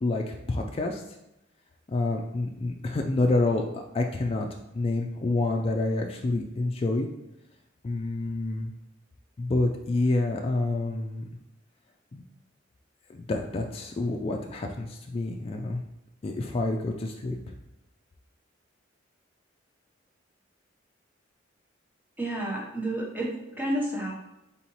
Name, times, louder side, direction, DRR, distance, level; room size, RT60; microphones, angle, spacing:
voice 1, 0.0-1.0 1.9-4.5 4.7-7.1 7.8-8.7 9.4-11.2 12.1-12.2 13.1-15.8 16.2-17.5, left 2 dB, 30° left, 2 dB, 0.3 m, -28 dB
voice 2, 22.2-24.1, right 1 dB, 10° right, -2 dB, 0.9 m, -30 dB
4.2 x 3.8 x 3.0 m, 0.90 s
head